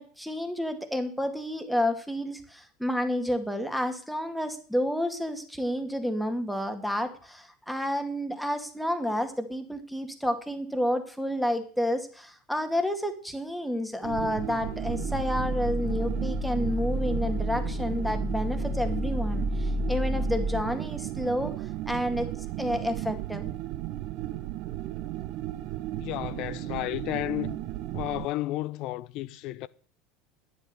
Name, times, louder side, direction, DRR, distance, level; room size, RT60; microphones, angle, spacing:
voice 1, 0.0-21.5 21.9-22.3 22.6-23.5, equal, ahead, 2.3 m, -30 dB
sound 1, 14.0-28.3, right 15 dB, 55° right, 1.0 m, -35 dB
sound 2, 14.7-20.6, left 1 dB, 25° left, 0.8 m, -31 dB
voice 2, 26.0-27.6 27.9-29.7, left 16 dB, 55° left, 0.5 m, -32 dB
11.5 x 10.5 x 6.9 m
figure-of-eight pair, 75°, 0 cm